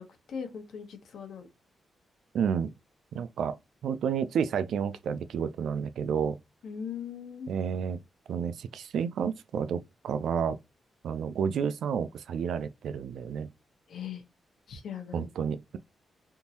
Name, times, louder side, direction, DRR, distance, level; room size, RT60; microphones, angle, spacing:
voice 1, 0.0-1.5 6.6-7.5 13.9-14.2 14.7-15.3, left 7 dB, 75° left, 0.9 m, -39 dB
voice 2, 2.3-2.7 3.1-3.6 3.8-6.4 7.5-8.0 8.3-10.6 11.0-13.5 15.1-15.8, right 7 dB, 85° right, 0.4 m, -30 dB
3.6 x 2.6 x 2.8 m
wide cardioid pair, 165°, 0 cm